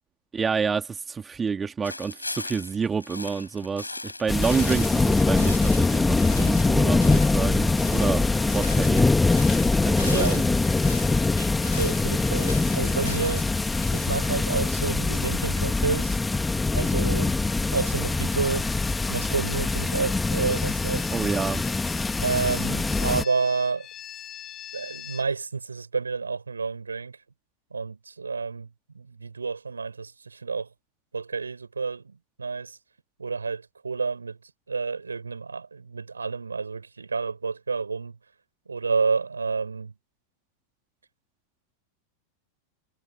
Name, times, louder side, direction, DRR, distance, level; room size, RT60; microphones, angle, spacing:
voice 1, 0.3-9.1 9.8-10.4 21.1-21.6, right 5 dB, 15° right, 3.3 m, -28 dB
sound 1, 1.8-14.2, left 2 dB, 85° left, 5.5 m, -40 dB
sound 2, 4.3-23.2, left 3 dB, 10° left, 2.3 m, -23 dB
voice 2, 10.0-10.4 11.4-11.5 11.8-13.5 13.9-16.2 16.7-17.3 17.7-18.8 19.1-21.1 22.2-23.9 24.7-27.2 27.7-28.7 28.9-30.7 31.1-32.8 33.2-34.4 34.7-38.1 38.7-39.9, right 4 dB, 75° right, 7.5 m, -29 dB
sound 3, 18.0-25.3, left 11 dB, 30° left, 6.5 m, -43 dB
figure-of-eight pair, 90°, 0 cm